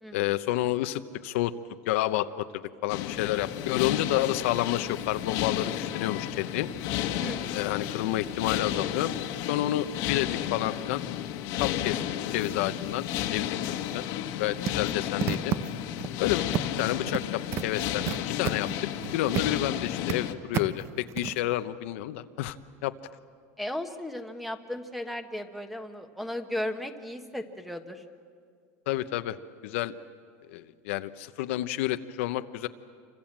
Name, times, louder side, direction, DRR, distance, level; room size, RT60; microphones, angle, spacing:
voice 1, 0.1-1.5 1.9-2.3 2.8-6.7 7.5-9.1 9.5-11.0 11.5-12.0 12.3-13.1 13.3-13.6 13.9-14.1 14.4-15.5 16.2-18.7 19.1-22.6 22.8-22.9 28.9-29.4 29.6-29.9 30.5-32.7, left 14 dB, 85° left, 10 dB, 1.0 m, -29 dB
sound 1, 2.9-20.3, left 11 dB, 60° left, 1.5 m, -32 dB
voice 2, 7.1-7.6 23.6-28.0, left 1 dB, ahead, 7 dB, 1.3 m, -36 dB
sound 2, 14.7-16.1 16.5-17.2 17.5-19.6 19.9-20.1 20.5-21.4, right 10 dB, 40° right, 1.0 m, -31 dB
28.0 x 25.0 x 7.5 m, 2.1 s
cardioid pair, 160°, 7 cm